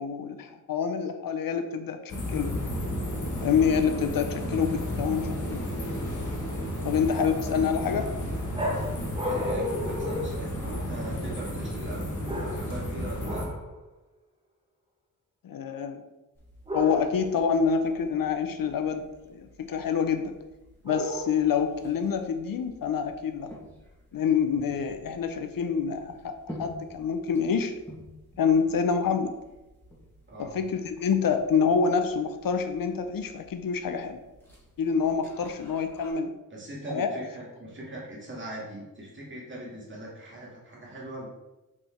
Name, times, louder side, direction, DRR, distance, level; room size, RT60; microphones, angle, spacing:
voice 1, 0.0-2.5 3.4-5.6 6.8-8.2 15.4-16.0 16.7-20.3 20.8-23.5 24.1-27.7 28.4-29.4 30.4-34.2 34.8-36.3 36.9-37.1, left 6 dB, 75° left, 8 dB, 0.7 m, -27 dB
sound 1, 2.1-13.5, equal, 60° left, 1.5 m, -32 dB
sound 2, 8.5-11.1 12.2-12.9 13.2-13.7 16.7-17.3 20.9-21.6, left 1 dB, 15° right, 1.2 m, -33 dB
voice 2, 9.2-12.1 12.4-13.4 30.3-30.5 36.5-41.3, right 1 dB, 35° right, -4 dB, 2.0 m, -40 dB
sound 3, 16.3-36.1, left 1 dB, 5° left, 1.9 m, -51 dB
5.9 x 4.6 x 4.4 m, 1.0 s
wide cardioid pair, 155°, 34 cm